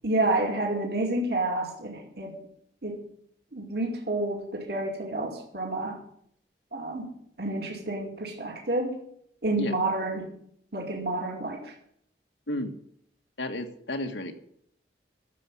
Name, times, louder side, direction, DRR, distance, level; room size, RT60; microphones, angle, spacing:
voice 1, 0.0-2.4 2.8-3.0 3.5-6.0 6.7-7.1 7.4-9.0 9.4-10.3 10.7-11.7, right 2 dB, 60° right, 0 dB, 2.5 m, -29 dB
voice 2, 13.4-14.3, left 1 dB, 90° left, 6 dB, 1.7 m, -32 dB
13.0 x 7.2 x 8.7 m, 0.69 s
head